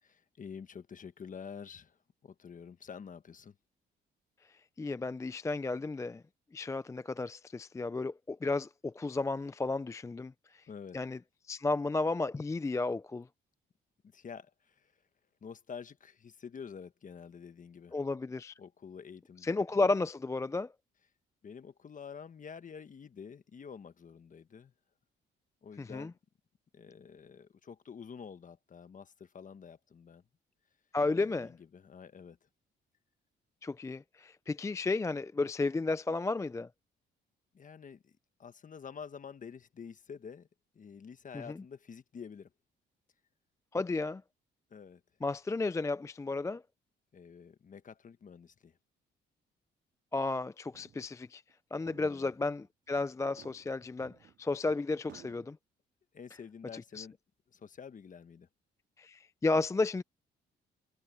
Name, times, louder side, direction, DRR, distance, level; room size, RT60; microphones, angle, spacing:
voice 1, 0.3-3.6 10.7-11.0 14.1-14.9 15.4-18.0 18.6-19.5 21.4-24.7 25.6-26.1 26.7-30.2 31.2-32.4 37.5-40.5 40.7-42.5 44.7-45.0 47.1-48.8 52.0-52.3 56.1-57.2 57.5-58.5, left 6 dB, 40° left, 1.4 m, -48 dB
voice 2, 4.8-6.2 6.5-10.6 10.9-11.2 11.5-13.3 17.9-18.5 19.4-20.7 25.8-26.1 30.9-31.5 33.6-36.7 41.3-41.6 43.7-44.2 45.2-46.6 50.1-51.4 51.7-55.6 56.7-57.1 59.0-60.0, left 3 dB, 15° left, 0.4 m, -33 dB
sound 1, 50.4-50.5 50.7-51.2 51.5-51.6 51.9-52.7 53.2-54.7 55.1-55.5, right 9 dB, 65° right, 3.5 m, -57 dB
cardioid pair, 90°, 20 cm